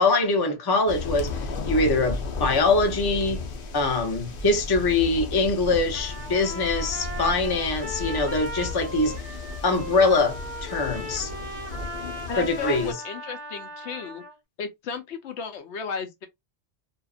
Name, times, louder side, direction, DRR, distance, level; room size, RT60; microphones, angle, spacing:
voice 1, 0.0-3.4 3.7-9.2 9.6-11.3 12.4-12.9, left 3 dB, 30° left, 0.5 m, -23 dB
sound 1, 0.9-12.9, left 3 dB, 60° left, 0.8 m, -34 dB
Trumpet, 5.9-14.3, equal, 15° right, 0.9 m, -38 dB
voice 2, 12.3-14.2 14.6-16.3, left 5 dB, 80° left, 1.0 m, -34 dB
2.8 x 2.4 x 2.4 m
omnidirectional pair, 1.2 m